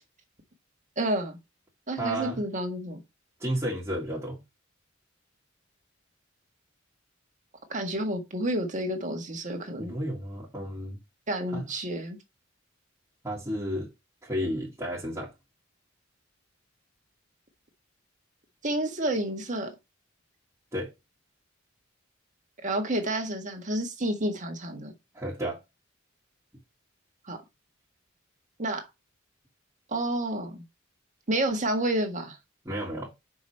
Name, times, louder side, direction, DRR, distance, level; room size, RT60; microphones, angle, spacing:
voice 1, 1.0-1.4 1.9-3.0 7.7-9.9 11.3-12.2 18.6-19.7 22.6-24.9 27.3-27.4 28.6-28.9 29.9-30.6 31.3-32.4, right 1 dB, 40° right, 1.6 m, -29 dB
voice 2, 2.0-2.4 3.4-4.4 9.8-11.0 11.5-11.7 13.2-13.9 14.2-15.3 20.7-20.9 25.1-25.6 32.7-33.1, equal, 15° right, 2.0 m, -32 dB
6.2 x 5.1 x 4.3 m
head